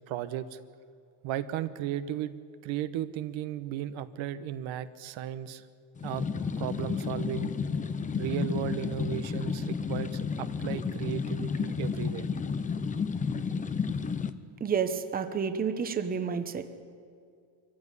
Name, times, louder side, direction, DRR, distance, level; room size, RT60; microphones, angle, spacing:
voice 1, 0.1-0.6 1.2-2.3 2.6-5.7 6.0-6.3 6.6-7.5 8.1-12.3, right 11 dB, 75° right, 12 dB, 1.2 m, -35 dB
sound 1, 6.0-14.3, left 5 dB, 15° left, 0.6 m, -32 dB
voice 2, 14.6-16.7, right 6 dB, 20° right, 8 dB, 0.9 m, -30 dB
24.0 x 15.0 x 9.8 m, 2.3 s
cardioid pair, 170°, 47 cm